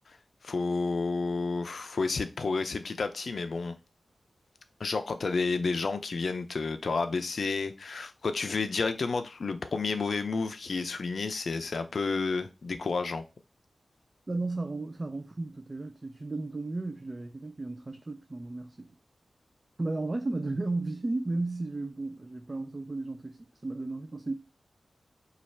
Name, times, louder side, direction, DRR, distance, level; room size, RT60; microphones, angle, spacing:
voice 1, 0.4-3.8 4.8-13.2, left 4 dB, 70° left, 0.4 m, -30 dB
voice 2, 14.3-19.0 19.8-24.3, right 2 dB, 35° right, 0.3 m, -34 dB
3.1 x 2.4 x 4.2 m
wide cardioid pair, 80°, 0 cm